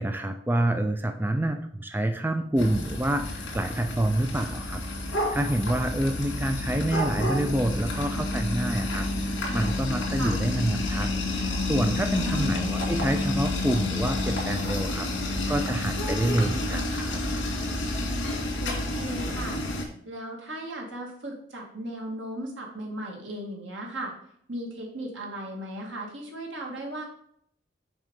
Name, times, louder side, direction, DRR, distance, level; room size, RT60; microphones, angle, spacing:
voice 1, 0.0-4.8 5.1-11.1 11.4-17.2, right 1 dB, 10° right, 6 dB, 0.4 m, -27 dB
sound 1, 2.6-19.9, left 2 dB, 75° left, 2.3 m, -29 dB
voice 2, 12.2-12.7 18.6-19.6 20.0-24.1 24.5-27.0, right 1 dB, 80° right, 0 dB, 2.1 m, -36 dB
6.2 x 4.7 x 5.3 m, 0.68 s
head